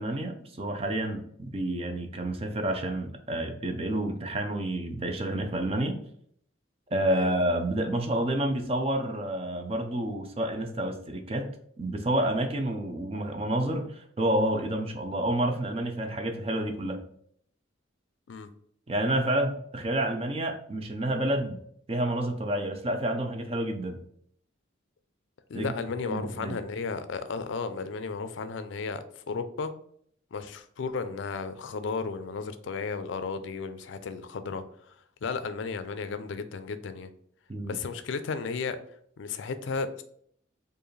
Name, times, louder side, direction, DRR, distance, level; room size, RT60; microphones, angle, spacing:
voice 1, 0.0-6.0 6.9-17.0 18.9-21.6 21.9-24.0 25.5-25.7 26.1-26.6 37.5-37.8, right 1 dB, 30° right, 5 dB, 0.5 m, -29 dB
voice 2, 25.5-29.7 30.3-34.6 35.2-37.1 37.6-38.8 39.2-40.0, left 4 dB, 70° left, 10 dB, 0.4 m, -34 dB
4.6 x 2.5 x 3.1 m, 0.65 s
head